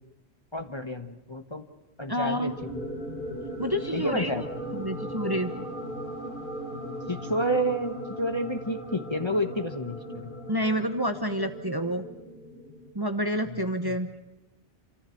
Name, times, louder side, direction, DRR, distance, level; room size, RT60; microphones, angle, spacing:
voice 1, 0.5-1.7 2.0-2.8 3.9-4.4 7.1-10.3 13.8-13.9, equal, 25° left, 6 dB, 1.1 m, -30 dB
voice 2, 2.1-2.6 3.6-4.5 4.7-5.5 10.5-12.1 12.9-14.1, equal, 20° right, 7 dB, 1.0 m, -28 dB
sound 1, 2.6-12.9, equal, 55° left, 3.8 m, -38 dB
27.5 x 14.5 x 8.5 m, 1.1 s
omnidirectional pair, 1.1 m